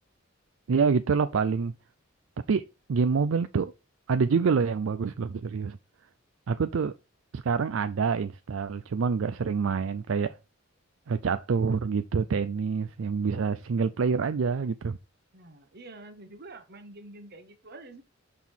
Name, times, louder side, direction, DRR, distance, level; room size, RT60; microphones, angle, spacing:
voice 1, 0.7-1.7 2.5-3.7 4.1-5.8 6.5-6.9 7.3-10.3 11.1-15.0, right 5 dB, 70° right, 0.4 m, -26 dB
voice 2, 15.3-18.0, right 2 dB, 50° right, 1.2 m, -47 dB
6.1 x 5.5 x 4.4 m
head